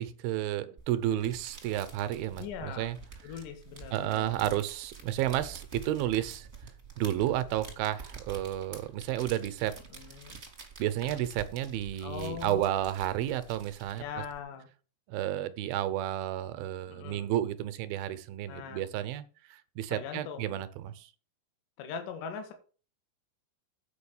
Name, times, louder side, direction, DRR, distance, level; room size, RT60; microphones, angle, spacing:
voice 1, 0.0-3.0 3.9-6.5 7.0-9.8 10.8-14.0 15.1-19.2 19.5-21.1, right 12 dB, 75° right, 12 dB, 2.4 m, -31 dB
sound 1, 0.8-14.4, right 5 dB, 30° right, 1.2 m, -48 dB
voice 2, 2.4-2.9 3.2-4.3 9.9-10.4 12.0-12.6 14.0-14.7 16.9-17.3 18.5-18.9 19.9-20.6 21.8-22.5, left 7 dB, 65° left, 6 dB, 2.8 m, -41 dB
8.7 x 5.1 x 7.0 m, 0.37 s
omnidirectional pair, 4.5 m